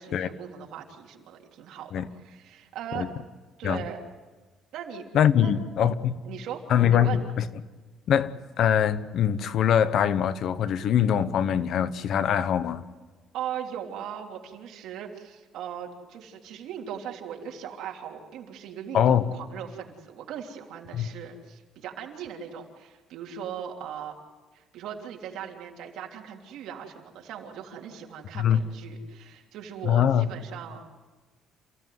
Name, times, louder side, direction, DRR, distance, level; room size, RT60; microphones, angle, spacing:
voice 1, 0.0-1.9 2.2-3.1 3.6-4.0 4.7-5.1 5.4-5.9 6.2-6.6 6.9-7.2 13.3-24.2 24.5-30.8, right 8 dB, 70° right, 1 dB, 3.4 m, -39 dB
voice 2, 5.1-6.1 6.7-7.4 8.1-12.8 18.9-19.2 20.9-21.1 28.3-28.6 29.8-30.3, left 9 dB, 50° left, 14 dB, 1.0 m, -23 dB
28.0 x 16.5 x 9.5 m, 1.3 s
cardioid pair, 165°, 0 cm